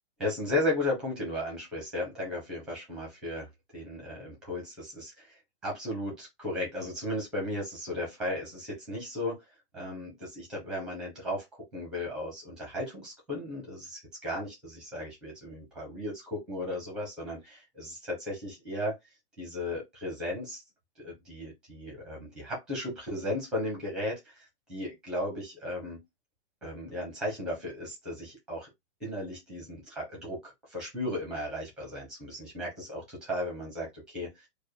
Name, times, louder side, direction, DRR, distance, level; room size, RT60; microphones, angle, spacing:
voice 1, 0.2-9.4 9.7-11.4 11.7-19.0 19.4-20.6 21.0-26.0 26.6-28.7 29.0-34.5, left 1 dB, ahead, 0.8 m, -35 dB
4.6 x 2.3 x 4.8 m
hypercardioid pair, 180°, 34 cm